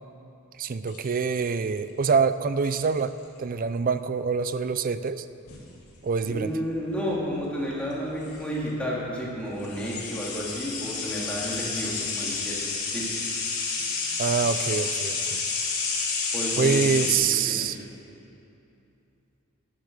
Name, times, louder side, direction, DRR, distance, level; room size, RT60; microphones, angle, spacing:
voice 1, 0.6-3.1 3.4-5.2 6.0-6.5 14.2-15.4 16.6-17.8, right 5 dB, 40° right, 12 dB, 0.4 m, -25 dB
sound 1, 0.9-1.6 2.6-3.0 5.5-5.7 7.9-8.0 8.2-8.4 9.6-17.2, left 4 dB, 75° left, 2.3 m, -30 dB
voice 2, 6.3-13.1 16.3-17.0 17.5-17.7, equal, 5° left, -6 dB, 2.3 m, -31 dB
10.0 x 9.9 x 6.5 m, 2.8 s
head